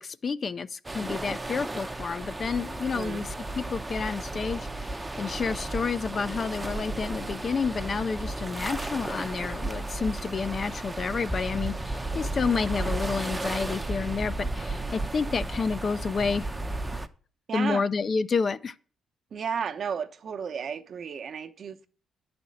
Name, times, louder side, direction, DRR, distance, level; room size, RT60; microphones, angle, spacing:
voice 1, 0.0-3.3 3.5-16.5 17.5-18.7, left 5 dB, 40° left, 0.5 m, -30 dB
sound 1, 0.8-17.1, right 2 dB, 15° right, 0.7 m, -34 dB
voice 2, 2.9-3.3 17.5-17.9 19.3-21.9, right 7 dB, 55° right, 0.9 m, -33 dB
10.0 x 4.3 x 7.7 m
cardioid pair, 90°, 0 cm